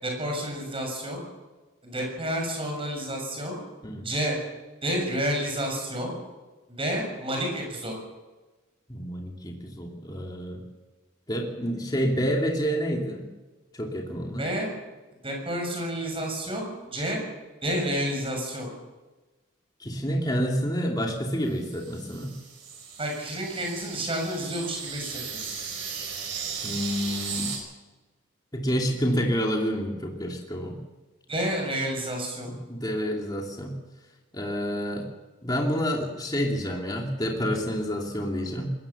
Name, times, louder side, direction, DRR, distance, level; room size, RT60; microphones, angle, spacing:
voice 1, 0.0-1.2 1.8-3.6 4.0-4.4 4.8-6.1 6.7-7.9 14.4-14.7 15.2-17.2 17.6-18.7 23.0-25.5 31.3-32.5, equal, 25° right, 1 dB, 6.9 m, -30 dB
voice 2, 8.9-10.6 11.3-13.3 13.7-14.5 19.8-22.3 26.6-27.5 28.5-30.8 32.5-33.7 34.3-35.1 35.4-38.7, equal, 20° left, 0 dB, 2.7 m, -28 dB
sound 1, 21.5-27.6, right 6 dB, 60° right, 5.4 m, -36 dB
21.0 x 17.5 x 7.1 m, 1.2 s
head